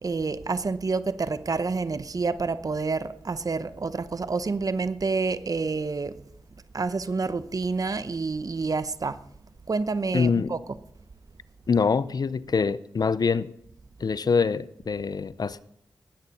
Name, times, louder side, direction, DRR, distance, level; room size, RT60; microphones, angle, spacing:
voice 1, 0.0-6.1 6.7-9.2 9.7-10.6, right 4 dB, 50° right, 0.8 m, -28 dB
voice 2, 10.1-10.5 11.7-13.5 14.0-15.6, left 5 dB, 55° left, 0.6 m, -24 dB
19.0 x 9.2 x 4.2 m
supercardioid pair, 40°, 8 cm